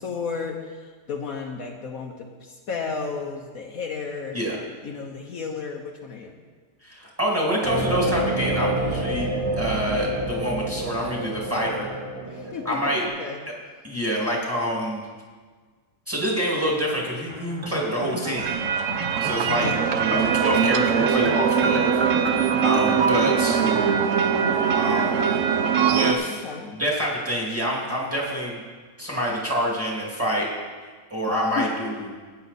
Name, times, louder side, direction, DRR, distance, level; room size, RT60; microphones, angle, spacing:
voice 1, 0.0-4.4 4.8-6.4 12.2-13.4 19.5-19.7 22.2-22.6 26.4-26.7 31.3-32.0, left 5 dB, 65° left, 2 dB, 1.3 m, -33 dB
voice 2, 6.8-9.3 9.6-11.9 12.6-13.0 13.8-15.0 16.1-18.6 19.2-19.8 20.1-21.9 22.3-23.6 24.7-25.3 25.9-26.4 26.8-28.6 29.0-30.5 31.1-31.9, equal, 10° right, -3 dB, 2.3 m, -26 dB
sound 1, 7.6-13.0, right 1 dB, 90° right, 2.4 m, -28 dB
sound 2, 17.3-24.1, right 2 dB, 35° right, 0.4 m, -33 dB
sound 3, 18.4-26.1, right 7 dB, 60° right, 1.0 m, -22 dB
15.0 x 9.4 x 4.2 m, 1.5 s
omnidirectional pair, 1.7 m